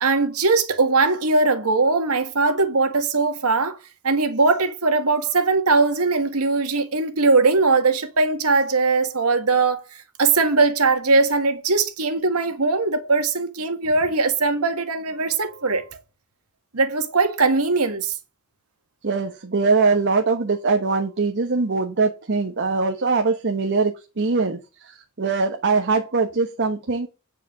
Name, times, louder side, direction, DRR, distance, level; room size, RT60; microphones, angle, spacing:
voice 1, 0.0-3.8 4.0-9.8 10.2-15.8 16.7-18.2, right 3 dB, 85° right, 1.7 m, -20 dB
voice 2, 19.0-27.1, right 4 dB, 55° right, 1.1 m, -22 dB
9.4 x 5.0 x 6.5 m
head